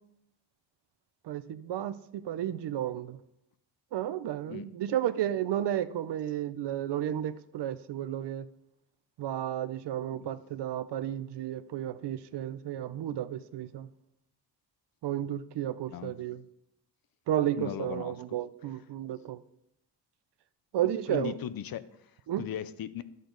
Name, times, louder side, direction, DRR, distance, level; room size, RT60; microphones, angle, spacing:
voice 1, 1.2-3.2 3.9-8.5 9.2-13.9 15.0-16.4 17.3-19.4 20.7-21.3 22.3-22.4, right 11 dB, 70° right, 0.6 m, -32 dB
voice 2, 17.6-18.2 21.1-22.1 22.4-23.0, left 10 dB, 55° left, 0.6 m, -37 dB
12.5 x 6.6 x 3.9 m
wide cardioid pair, 160°, 43 cm